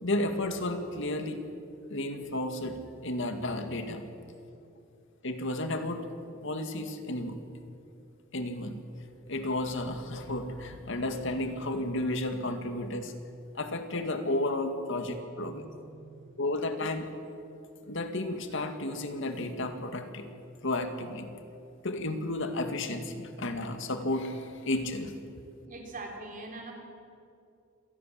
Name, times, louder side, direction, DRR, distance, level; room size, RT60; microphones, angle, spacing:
voice 1, 0.0-1.4 1.9-4.1 5.2-6.1 6.4-7.4 8.3-8.8 9.3-13.1 13.5-15.7 16.4-17.1 17.9-20.3 20.6-21.3 21.8-25.2, left 1 dB, 65° left, 7 dB, 2.2 m, -32 dB
voice 2, 15.4-16.3 25.7-26.7, right 2 dB, 40° right, 1 dB, 3.7 m, -43 dB
27.0 x 19.0 x 7.6 m, 2.6 s
head